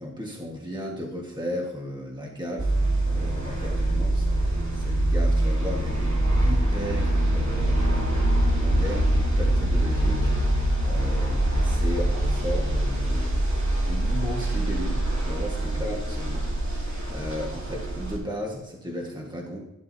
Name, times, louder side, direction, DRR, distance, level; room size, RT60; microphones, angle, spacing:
voice 1, 0.0-2.7 3.1-8.2 8.5-19.6, equal, 15° right, -1 dB, 1.5 m, -35 dB
sound 1, 2.6-18.2, right 1 dB, 70° right, 2.8 m, -24 dB
13.5 x 11.0 x 2.8 m, 0.91 s
wide cardioid pair, 80°, 30 cm